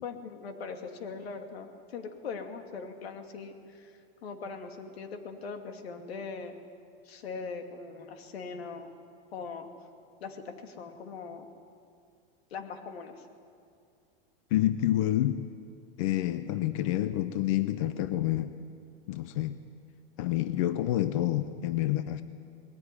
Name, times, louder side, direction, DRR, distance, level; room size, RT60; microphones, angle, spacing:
voice 1, 0.0-6.6 7.0-8.9 9.3-9.7 10.2-11.5 12.5-13.3, left 5 dB, 85° left, 5 dB, 2.5 m, -41 dB
voice 2, 14.5-15.5 16.0-18.5 19.1-19.6 20.2-22.2, left 13 dB, 35° left, 12 dB, 0.5 m, -28 dB
20.5 x 15.0 x 9.9 m, 2.3 s
supercardioid pair, 175°, 30 cm